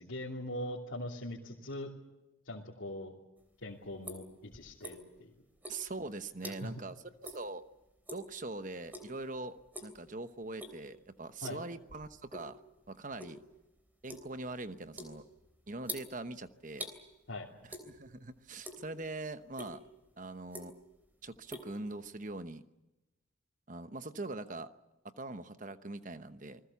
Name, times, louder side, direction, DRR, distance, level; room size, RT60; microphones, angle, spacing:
voice 1, 0.0-1.9 2.4-3.1 3.6-5.3 6.4-6.7 11.4-11.6 17.3-17.5, left 1 dB, 80° left, -5 dB, 2.9 m, -41 dB
sound 1, 3.4-5.2 5.6-6.9 7.2-7.5 7.8-8.3 8.9-9.2 9.6-10.0 10.4-10.9 11.4-12.5 12.8-17.0 17.7-18.2 18.5-19.1 19.5-19.7 20.3-21.0 21.2-22.4, right 1 dB, 10° right, 3.2 m, -46 dB
voice 2, 5.7-7.0 7.2-7.6 8.1-12.6 12.9-13.4 14.0-15.2 15.7-16.9 17.7-19.8 20.2-20.8 21.2-22.6 23.7-24.7 25.0-26.6, right 2 dB, 40° right, 11 dB, 1.0 m, -42 dB
28.5 x 20.5 x 7.2 m, 0.99 s
head